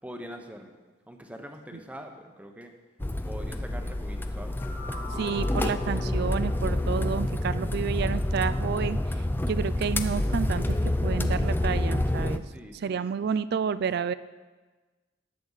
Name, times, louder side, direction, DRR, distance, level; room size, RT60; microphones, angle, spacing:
voice 1, 0.0-0.8 1.1-2.7 3.2-4.6 5.1-5.6 12.5-13.2, equal, 5° right, 4 dB, 1.0 m, -43 dB
sound 1, 3.0-12.4, left 1 dB, 10° left, 0.4 m, -28 dB
sound 2, 4.2-7.7, left 3 dB, 55° left, 2.1 m, -43 dB
voice 2, 5.2-9.0 9.5-10.8 11.0-12.4 12.7-14.1, right 6 dB, 55° right, 15 dB, 0.3 m, -30 dB
18.5 x 7.8 x 4.0 m, 1.3 s
head